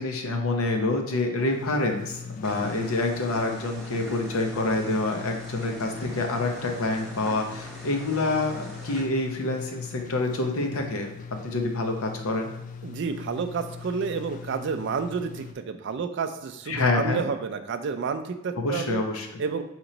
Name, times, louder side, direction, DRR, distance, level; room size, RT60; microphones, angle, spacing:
voice 1, 0.0-11.1 11.4-12.5 16.7-17.2 18.6-19.4, left 2 dB, 80° left, 3 dB, 0.7 m, -27 dB
sound 1, 1.5-15.5, left 6 dB, 40° left, 0.3 m, -41 dB
sound 2, 2.4-9.0, equal, ahead, 1.0 m, -42 dB
voice 2, 12.8-19.0 19.4-19.6, right 5 dB, 55° right, 8 dB, 0.4 m, -30 dB
4.4 x 3.0 x 3.8 m, 0.88 s
head